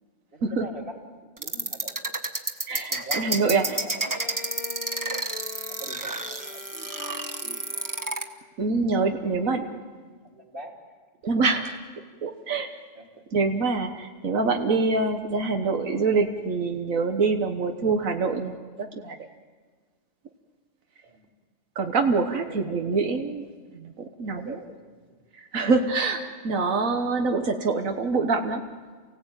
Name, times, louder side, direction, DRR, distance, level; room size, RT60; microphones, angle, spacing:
voice 1, 0.3-1.0 1.3-2.0 2.7-4.4 5.7-7.8 9.0-10.7 12.9-13.2 21.1-21.4 22.4-23.3 24.4-24.9, right 2 dB, 40° right, 1 dB, 3.3 m, -44 dB
sound 1, 1.4-8.2, right 2 dB, 15° right, 1.4 m, -30 dB
voice 2, 2.7-3.8 8.6-9.8 11.2-11.8 12.2-12.7 13.3-19.2 21.7-23.4 23.7-24.6 25.3-28.6, right 4 dB, 85° right, 5 dB, 1.7 m, -25 dB
Bowed string instrument, 4.0-8.5, left 4 dB, 35° left, 1.3 m, -42 dB
29.5 x 17.0 x 9.0 m, 1.5 s
omnidirectional pair, 1.4 m